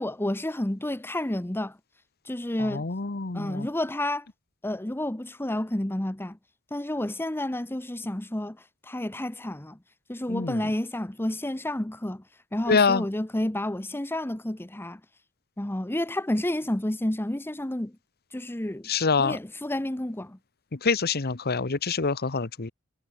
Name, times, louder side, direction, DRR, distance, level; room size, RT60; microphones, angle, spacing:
voice 1, 0.0-1.8 2.2-2.9 3.3-4.3 4.6-6.4 6.7-8.6 8.8-9.8 10.1-12.2 12.5-15.0 15.6-17.9 18.3-18.9 19.2-20.4, left 1 dB, 10° left, 0.9 m, -30 dB
voice 2, 2.6-3.7 10.3-10.7 12.7-13.0 18.8-19.4 20.7-22.7, left 4 dB, 50° left, 1.1 m, -26 dB
head